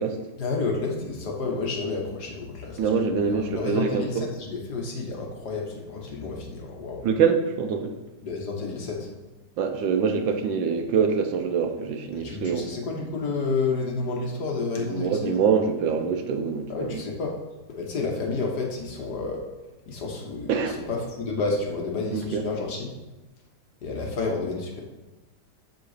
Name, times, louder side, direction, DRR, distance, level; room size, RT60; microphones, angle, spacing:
voice 1, 0.4-7.0 8.2-9.1 12.2-15.3 16.7-17.4 17.8-19.5 19.9-22.9 23.8-24.8, left 3 dB, 60° left, 1 dB, 1.8 m, -30 dB
voice 2, 2.8-4.0 7.0-7.9 9.6-12.7 14.8-17.0 20.5-20.8 22.1-22.4, right 6 dB, 80° right, 6 dB, 1.6 m, -25 dB
7.0 x 7.0 x 5.0 m, 1.1 s
omnidirectional pair, 2.0 m